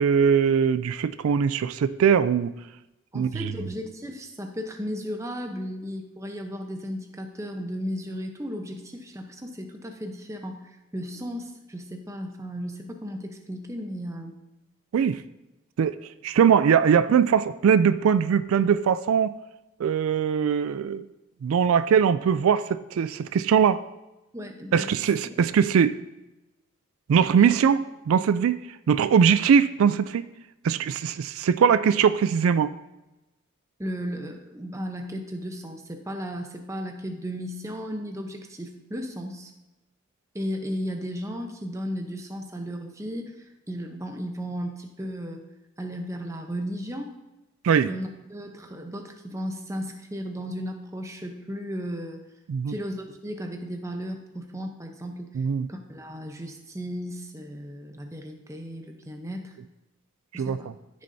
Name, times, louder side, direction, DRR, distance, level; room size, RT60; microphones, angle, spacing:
voice 1, 0.0-2.5 3.1-3.5 14.9-15.2 15.8-16.0 16.2-19.4 19.8-21.0 21.4-23.8 24.7-26.0 27.1-30.3 30.6-32.7 47.6-47.9 52.5-52.7 55.3-55.7 60.3-60.6, right 7 dB, 85° right, 14 dB, 0.3 m, -21 dB
voice 2, 3.1-14.3 24.3-25.1 25.4-25.5 27.3-27.5 33.8-39.5 40.3-45.4 45.8-47.1 47.9-52.2 52.7-55.4 55.7-59.6 60.3-60.7, equal, 15° right, 4 dB, 0.8 m, -35 dB
14.5 x 6.4 x 2.7 m, 1.0 s
head